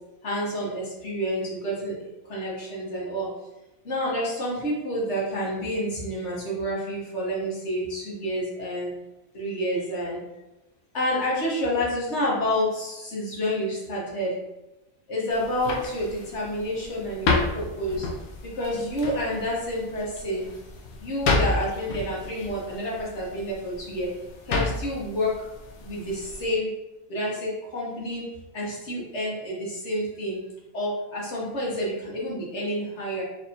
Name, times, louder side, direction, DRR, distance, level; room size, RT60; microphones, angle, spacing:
voice 1, 0.2-3.3 3.8-8.9 9.3-10.2 10.9-14.3 15.1-18.1 18.5-20.5 21.0-24.1 24.5-25.5 25.8-26.7 27.1-28.2 28.5-30.4 30.7-33.2, equal, 55° left, -5 dB, 1.3 m, -29 dB
sound 1, 15.3-26.5, left 3 dB, 85° left, 1.0 m, -31 dB
4.3 x 2.8 x 2.8 m, 1.0 s
omnidirectional pair, 1.5 m